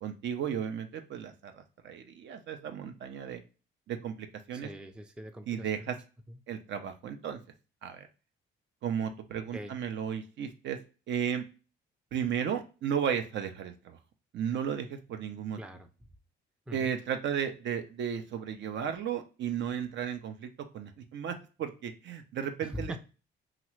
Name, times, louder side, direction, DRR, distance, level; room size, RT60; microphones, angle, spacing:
voice 1, 0.0-3.4 3.9-4.7 5.5-6.0 6.5-7.4 7.8-8.1 8.8-10.8 11.1-11.4 12.1-14.0 14.3-15.6 16.7-23.0, right 8 dB, 65° right, 7 dB, 0.5 m, -34 dB
voice 2, 4.5-5.9 6.3-6.4 9.5-9.8 15.5-15.9 16.7-16.9 22.6-23.0, equal, 5° right, 6 dB, 0.4 m, -42 dB
2.9 x 2.4 x 3.0 m, 0.34 s
cardioid pair, 90°, 20 cm